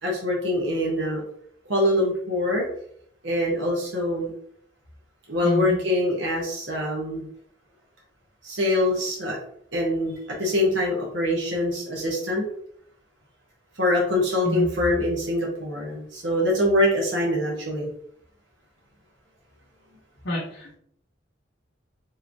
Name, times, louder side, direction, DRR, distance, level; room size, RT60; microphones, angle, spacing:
voice 1, 0.0-1.2 1.7-2.7 3.2-4.3 5.3-7.3 8.4-9.4 9.7-12.4 13.8-17.9, left 1 dB, 75° right, -3 dB, 1.3 m, -24 dB
voice 2, 5.4-5.8 14.4-14.7 20.2-20.8, equal, 65° left, -7 dB, 1.3 m, -27 dB
5.0 x 3.1 x 2.9 m, 0.65 s
head